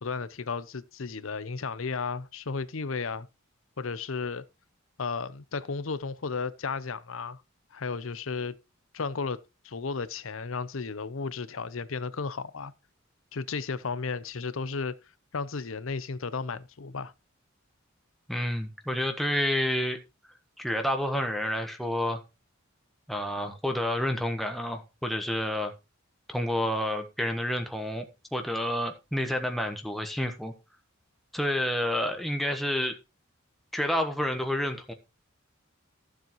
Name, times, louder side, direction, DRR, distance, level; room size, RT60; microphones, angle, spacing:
voice 1, 0.0-3.3 3.8-4.4 5.0-7.4 7.7-8.6 8.9-9.4 9.6-12.7 13.3-14.9 15.3-17.1, left 4 dB, 75° left, 0.7 m, -34 dB
voice 2, 18.3-20.0 20.6-22.2 23.1-25.7 26.3-30.5 31.3-32.9 33.7-34.9, left 1 dB, ahead, 1.1 m, -29 dB
14.5 x 7.5 x 3.0 m
head